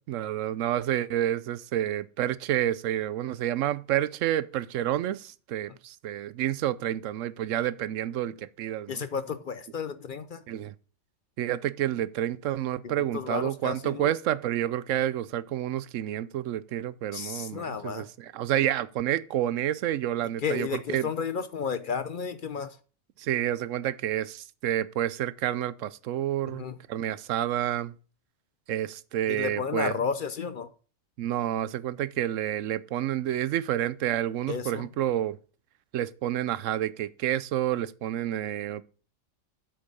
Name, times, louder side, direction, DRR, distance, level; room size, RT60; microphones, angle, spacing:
voice 1, 0.0-9.0 10.5-10.7 11.4-21.1 23.2-26.6 26.9-27.9 28.7-29.9 31.2-35.4 35.9-38.8, right 12 dB, 85° right, 1.0 m, -29 dB
voice 2, 8.9-10.4 12.8-14.1 17.1-18.1 20.4-22.8 26.5-26.8 29.3-30.7 34.5-34.9, left 6 dB, 50° left, 0.7 m, -32 dB
8.0 x 6.5 x 5.3 m
omnidirectional pair, 1.3 m